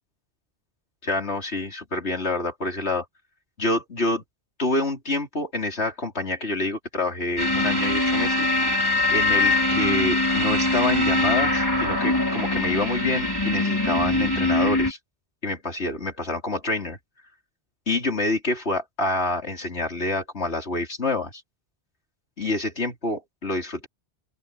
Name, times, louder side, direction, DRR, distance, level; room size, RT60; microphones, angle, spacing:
voice 1, 1.0-3.0 3.6-4.2 4.6-8.5 9.1-15.0 15.4-17.0 17.9-21.4 22.4-23.9, left 2 dB, 85° left, 4.4 m, -27 dB
sound 1, 7.4-14.9, left 2 dB, 20° left, 4.8 m, -22 dB
open air
omnidirectional pair, 1.1 m